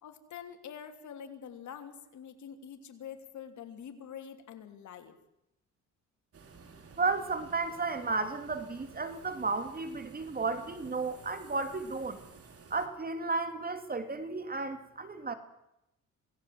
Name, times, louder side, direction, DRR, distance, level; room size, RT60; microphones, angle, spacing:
voice 1, 0.0-5.2, left 8 dB, 70° left, 6 dB, 3.2 m, -46 dB
sound 1, 6.3-12.9, right 5 dB, 50° right, 4.4 m, -53 dB
voice 2, 7.0-12.2 12.7-15.3, right 3 dB, 30° right, 9 dB, 2.7 m, -33 dB
27.0 x 18.0 x 7.8 m, 0.86 s
cardioid pair, 90°, 30 cm